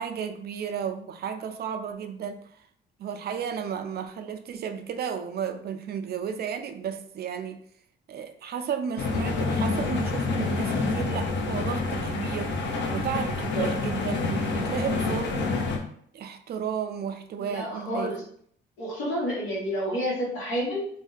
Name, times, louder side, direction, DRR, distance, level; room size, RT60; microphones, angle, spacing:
voice 1, 0.0-2.5 3.0-7.6 8.1-15.6 16.1-18.1, right 7 dB, 55° right, 7 dB, 0.4 m, -33 dB
sound 1, 9.0-15.8, left 3 dB, 65° left, 0.6 m, -28 dB
voice 2, 17.4-18.2 18.8-20.9, equal, 85° left, -5 dB, 1.2 m, -29 dB
2.5 x 2.1 x 3.8 m, 0.63 s
cardioid pair, 90°, 20 cm